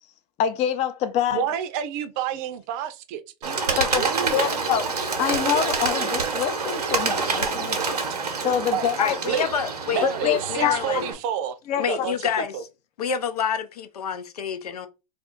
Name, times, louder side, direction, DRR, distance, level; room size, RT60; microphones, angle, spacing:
voice 1, 0.4-1.4 3.7-4.9 5.2-7.9 8.4-9.1 10.0-10.8 11.7-12.1, left 9 dB, 35° left, 0.6 m, -26 dB
voice 2, 1.3-4.6 7.9-8.0 8.7-8.9 9.3-9.5 9.9-11.6 11.9-12.1 12.5-12.6, right 8 dB, 45° right, 0.6 m, -29 dB
Bird, 3.4-11.1, right 4 dB, 85° right, 0.9 m, -27 dB
voice 3, 9.0-11.1 11.8-12.6 13.0-14.9, left 7 dB, 80° left, 0.7 m, -28 dB
2.6 x 2.4 x 3.6 m
hypercardioid pair, 105°, 19 cm